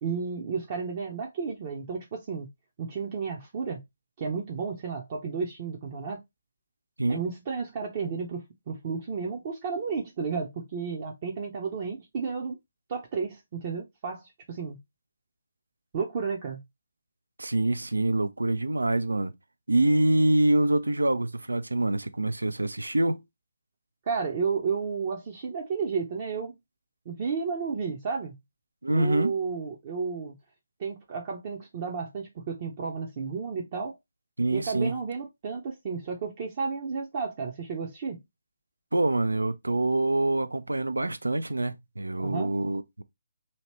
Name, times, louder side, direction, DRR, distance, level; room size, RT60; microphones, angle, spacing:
voice 1, 0.0-2.5 2.8-3.8 4.2-6.2 7.1-12.6 12.9-14.8 15.9-16.6 24.1-26.6 27.1-28.3 28.9-30.3 30.8-34.0 34.5-38.2 42.2-42.5, right 5 dB, 35° right, 0.7 m, -32 dB
voice 2, 17.4-19.3 19.7-23.2 28.8-29.3 34.4-34.9 38.9-43.0, right 2 dB, 80° right, 0.5 m, -25 dB
2.9 x 2.8 x 3.1 m
figure-of-eight pair, 145°, 0 cm